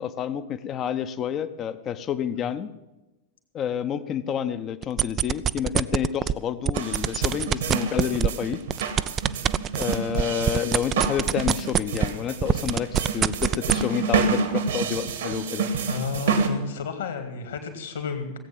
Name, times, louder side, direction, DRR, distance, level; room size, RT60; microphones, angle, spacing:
voice 1, 0.0-2.7 3.5-8.6 9.7-15.7, left 9 dB, 30° left, 11 dB, 0.7 m, -29 dB
sound 1, 4.8-6.3 6.7-12.2 12.4-13.8, right 9 dB, 25° right, 0.4 m, -23 dB
sound 2, 6.7-16.5, right 5 dB, 65° right, 1.6 m, -28 dB
voice 2, 15.9-18.3, left 5 dB, 60° left, 6 dB, 2.3 m, -31 dB
17.0 x 8.4 x 7.4 m, 1.0 s
figure-of-eight pair, 90°, 0 cm